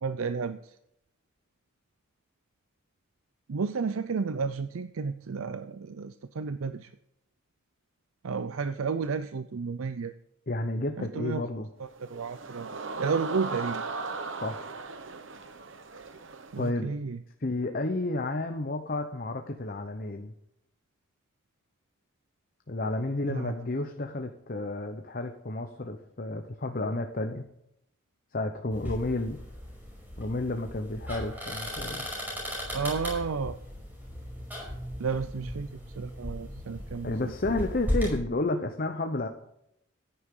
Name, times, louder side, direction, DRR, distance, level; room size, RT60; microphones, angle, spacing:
voice 1, 0.0-0.8 3.5-6.9 8.2-10.1 11.0-11.4 11.8-12.7 13.0-13.8 16.5-17.2 23.3-23.5 32.7-33.6 35.0-37.3, right 5 dB, 80° right, 11 dB, 0.5 m, -32 dB
voice 2, 10.5-11.7 14.4-14.6 16.6-16.9 17.4-20.3 22.7-27.5 28.3-29.4 30.2-32.1 37.0-39.3, left 2 dB, 45° left, 5 dB, 0.9 m, -31 dB
sound 1, 11.9-16.7, right 4 dB, 60° right, 1.0 m, -37 dB
sound 2, 28.7-38.2, equal, 10° right, 5.3 m, -36 dB
14.0 x 10.0 x 3.8 m, 0.79 s
head